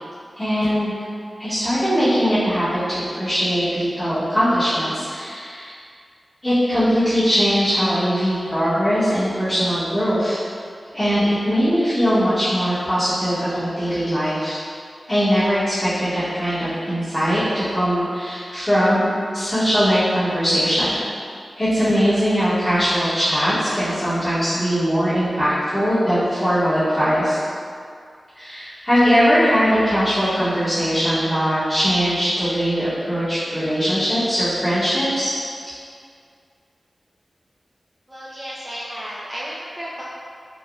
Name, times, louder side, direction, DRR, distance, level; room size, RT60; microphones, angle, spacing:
voice 1, 0.4-0.9 1.4-5.7 6.4-10.4 10.9-14.6 15.1-19.0 19.3-21.2 21.6-27.4 28.4-35.3, equal, 20° left, -15 dB, 1.0 m, -20 dB
voice 2, 38.1-40.0, equal, 20° right, -8 dB, 0.4 m, -33 dB
3.3 x 2.1 x 2.4 m, 2.2 s
cardioid pair, 55°, 0 cm